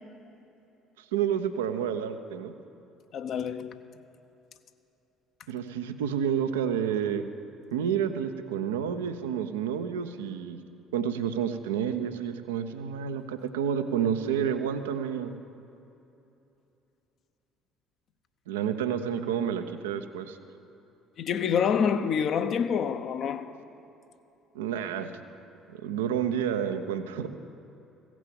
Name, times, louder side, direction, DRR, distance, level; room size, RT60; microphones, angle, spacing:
voice 1, 1.1-2.5 5.5-7.3 7.7-10.6 10.9-15.3 18.5-20.4 24.5-25.1 25.7-27.3, right 8 dB, 80° right, 0.6 m, -29 dB
voice 2, 3.1-3.8 21.2-23.5, left 7 dB, 55° left, 0.7 m, -27 dB
16.0 x 6.1 x 7.8 m
hypercardioid pair, 55°, 0 cm